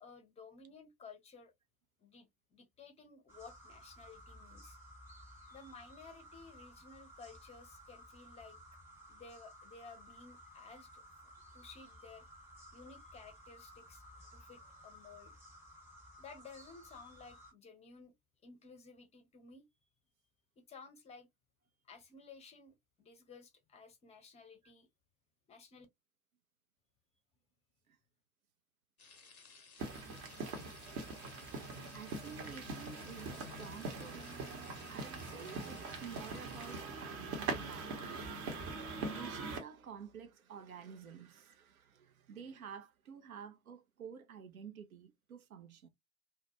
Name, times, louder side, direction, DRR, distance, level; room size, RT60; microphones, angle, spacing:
voice 1, 0.0-1.5 2.0-4.8 5.5-8.6 9.1-11.0 11.5-12.2 12.7-14.0 14.3-15.3 16.2-18.1 18.4-19.7 20.6-21.3 21.8-24.9 25.5-25.9, left 4 dB, 15° left, 0.6 m, -55 dB
sound 1, 3.3-17.5, equal, 5° right, 1.0 m, -56 dB
sound 2, 29.0-36.8, left 5 dB, 90° left, 0.6 m, -58 dB
sound 3, 29.8-39.6, right 3 dB, 40° right, 0.8 m, -42 dB
voice 2, 31.8-34.3 34.9-38.3 39.1-45.9, right 7 dB, 80° right, 0.5 m, -51 dB
2.2 x 2.2 x 2.8 m
figure-of-eight pair, 75°, 42 cm